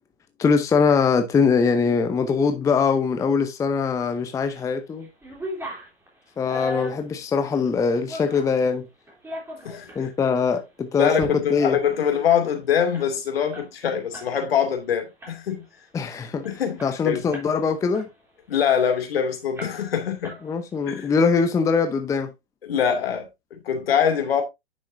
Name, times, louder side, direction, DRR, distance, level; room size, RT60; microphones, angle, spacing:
voice 1, 0.4-5.1 6.4-8.9 10.0-11.8 15.9-16.5 16.8-18.1 20.4-22.3, left 5 dB, 10° left, 0.7 m, -22 dB
sound 1, 4.1-4.7 5.0-8.6 9.1-10.0 10.5-10.6 11.0-11.3 11.6-11.7 12.0-14.3 14.6-14.8 15.2-15.7 16.1-16.2 16.4-17.6 17.9-19.1 19.6-20.0 20.2-20.9, equal, 5° right, 3.1 m, -38 dB
voice 2, 9.6-10.1 11.0-15.6 16.4-17.2 18.5-20.4 20.9-21.1 22.6-24.4, left 8 dB, 65° left, 2.5 m, -24 dB
9.7 x 6.4 x 2.6 m
hypercardioid pair, 115°, 32 cm